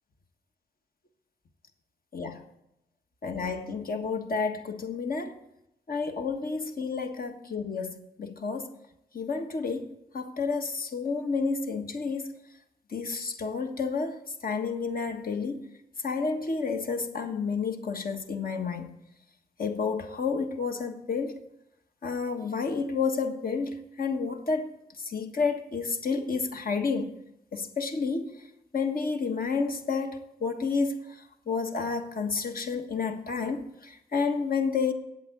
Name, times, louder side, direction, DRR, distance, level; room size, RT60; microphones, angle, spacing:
voice 1, 3.2-5.4 5.9-8.7 9.1-12.3 12.9-15.7 16.0-18.9 19.6-21.3 22.0-24.7 25.1-27.2 27.5-28.3 28.7-31.1 31.5-34.9, left 4 dB, 55° left, 1.4 m, -30 dB
8.4 x 7.5 x 8.3 m
supercardioid pair, 45°, 17 cm